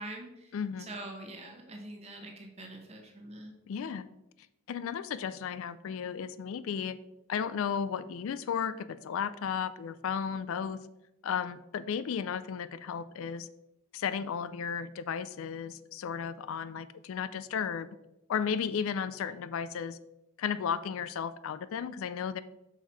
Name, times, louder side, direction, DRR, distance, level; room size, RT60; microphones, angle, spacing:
voice 1, 0.0-3.6, right 1 dB, 30° right, 2 dB, 1.0 m, -44 dB
voice 2, 0.5-0.9 3.7-4.1 4.7-7.0 7.3-10.8 11.2-13.5 13.9-17.9 18.3-20.0 20.4-22.4, left 7 dB, 70° left, 14 dB, 0.3 m, -34 dB
5.7 x 4.5 x 4.6 m, 0.91 s
head